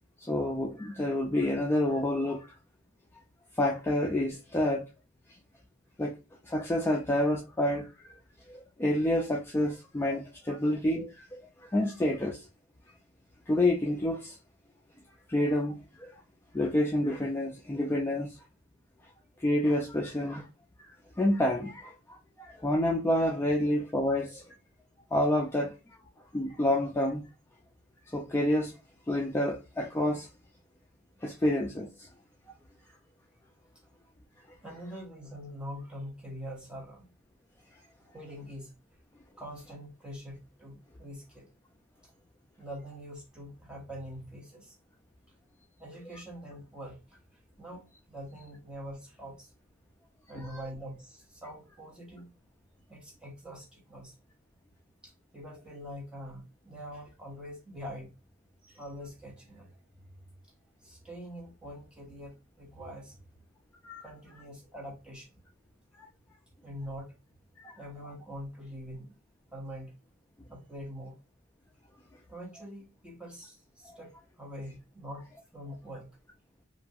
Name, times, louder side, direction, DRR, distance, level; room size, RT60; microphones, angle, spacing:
voice 1, 0.2-2.5 3.5-4.8 6.0-6.2 6.4-7.9 8.5-12.5 13.5-14.4 15.3-16.1 16.5-18.4 19.4-20.5 20.8-24.4 25.1-25.7 26.3-27.3 28.1-28.8 29.1-30.3 31.2-32.1 50.5-50.6 63.8-64.1 66.0-66.1 67.6-67.8 73.9-74.0, left 1 dB, 10° left, 0.3 m, -29 dB
voice 2, 34.6-37.1 38.0-38.7 39.4-41.5 42.0-42.1 42.6-44.8 45.8-49.5 50.3-52.3 52.9-54.2 55.0-58.1 58.6-60.5 60.8-63.3 64.0-65.4 66.6-67.2 67.8-69.2 69.5-69.9 70.5-71.2 72.3-75.3 75.5-76.2, equal, 5° right, 0.9 m, -44 dB
2.8 x 2.3 x 2.6 m
head